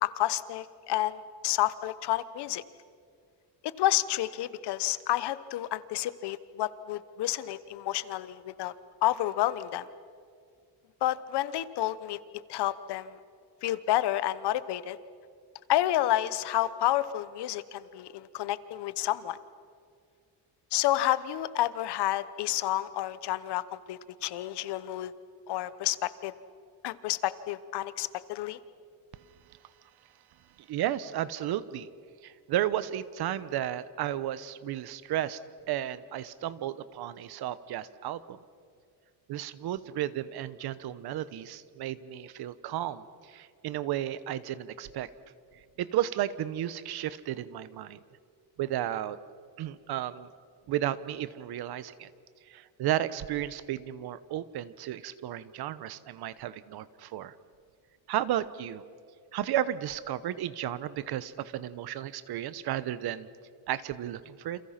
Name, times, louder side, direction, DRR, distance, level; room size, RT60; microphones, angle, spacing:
voice 1, 0.0-2.6 3.6-8.7 9.0-9.9 11.0-12.2 12.5-13.2 13.6-15.0 15.7-19.4 20.7-25.1 25.5-26.3 26.8-28.6, left 14 dB, 75° left, 15 dB, 1.1 m, -30 dB
voice 2, 30.6-31.9 32.2-35.4 35.7-38.4 39.3-45.1 45.8-48.0 48.6-49.2 49.6-50.3 50.7-52.1 52.5-57.3 58.1-58.8 59.3-63.3 63.7-64.6, right 12 dB, 65° right, 16 dB, 1.1 m, -33 dB
29.0 x 27.5 x 5.9 m, 2.2 s
cardioid pair, 150°, 41 cm